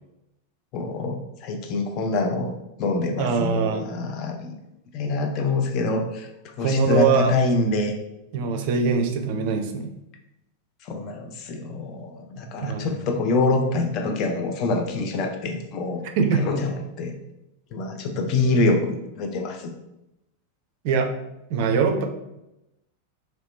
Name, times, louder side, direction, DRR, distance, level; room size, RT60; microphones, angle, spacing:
voice 1, 0.7-2.5 2.8-4.5 4.9-6.3 6.6-8.0 10.8-16.1 16.3-17.1 17.7-19.7, left 3 dB, 40° left, 4 dB, 0.5 m, -25 dB
voice 2, 3.2-3.9 6.6-7.3 8.3-9.9 12.6-13.1 16.2-16.5 20.8-21.1 21.5-22.1, right 5 dB, 50° right, 5 dB, 0.4 m, -22 dB
3.0 x 2.9 x 3.0 m, 0.89 s
figure-of-eight pair, 90°, 0 cm